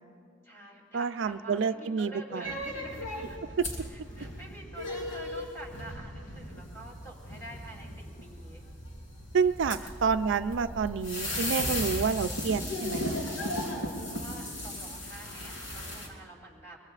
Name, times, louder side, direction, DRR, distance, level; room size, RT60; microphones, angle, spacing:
voice 1, 0.4-3.6 3.9-8.6 9.8-10.0 11.7-12.0 13.5-16.8, right 1 dB, 15° left, -2 dB, 3.1 m, -47 dB
voice 2, 0.9-2.5 9.3-13.2, right 5 dB, 75° right, 10 dB, 0.4 m, -29 dB
sound 1, 2.4-16.1, left 1 dB, 80° left, 3.4 m, -36 dB
23.5 x 23.5 x 2.5 m, 2.2 s
head